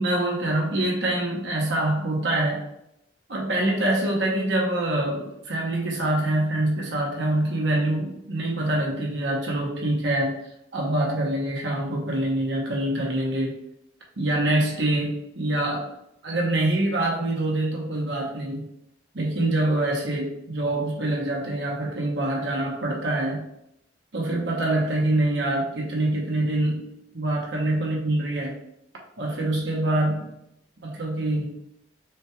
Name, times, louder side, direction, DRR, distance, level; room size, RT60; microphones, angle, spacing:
voice 1, 0.0-2.6 3.3-10.4 10.7-13.6 14.2-15.9 16.2-18.7 19.1-23.4 24.1-26.9 27.1-28.6 29.2-30.3 30.8-31.5, right 1 dB, 80° right, -2 dB, 1.0 m, -25 dB
6.3 x 2.3 x 3.0 m, 0.79 s
head